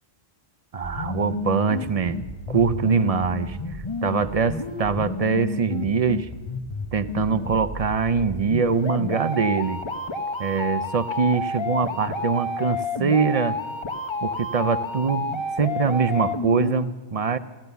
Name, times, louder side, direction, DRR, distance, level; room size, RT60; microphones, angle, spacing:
voice 1, 0.7-6.3 6.9-9.8 10.4-13.6 14.2-17.4, right 5 dB, 45° right, 13 dB, 0.5 m, -23 dB
sound 1, 0.8-16.8, left 2 dB, 30° left, 0.9 m, -30 dB
15.5 x 14.0 x 6.8 m, 1.2 s
omnidirectional pair, 1.1 m